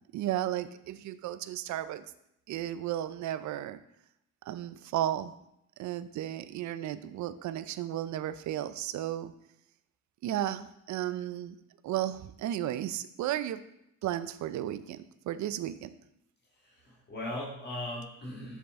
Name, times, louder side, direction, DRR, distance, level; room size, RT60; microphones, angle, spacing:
voice 1, 0.1-2.1 2.5-3.8 4.5-5.3 5.8-9.3 10.2-11.6 11.8-13.6 14.0-15.9, right 12 dB, 70° right, 14 dB, 0.5 m, -34 dB
voice 2, 16.5-18.6, left 1 dB, 35° left, -4 dB, 1.8 m, -39 dB
6.9 x 6.1 x 3.6 m, 0.80 s
cardioid pair, 90°, 30 cm